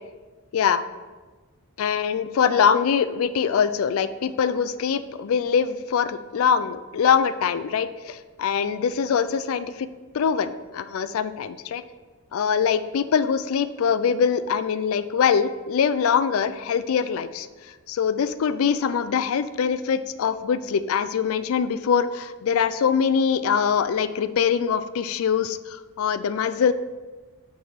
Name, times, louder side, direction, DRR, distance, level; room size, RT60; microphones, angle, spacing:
voice 1, 1.8-9.9 10.1-11.8 12.3-26.7, left 7 dB, 75° left, 13 dB, 0.3 m, -23 dB
6.4 x 3.5 x 5.8 m, 1.3 s
head